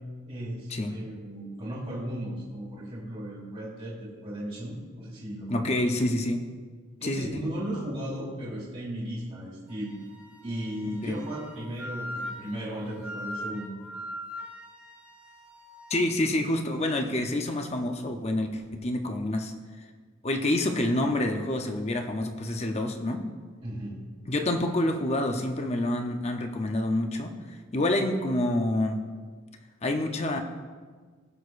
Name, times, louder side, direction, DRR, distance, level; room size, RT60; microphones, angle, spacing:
voice 1, 0.3-5.8 7.0-10.0 10.4-13.8 23.6-24.0, right 1 dB, 30° right, -7 dB, 1.6 m, -36 dB
voice 2, 5.5-6.4 7.0-7.4 11.0-11.1 15.9-19.5 20.2-23.2 24.3-27.3 27.7-29.0 29.8-30.4, left 1 dB, 30° left, 5 dB, 0.7 m, -27 dB
Wind instrument woodwind instrument, 9.7-16.1, left 1 dB, 5° right, 0.8 m, -41 dB
17.5 x 6.3 x 2.5 m, 1.5 s
head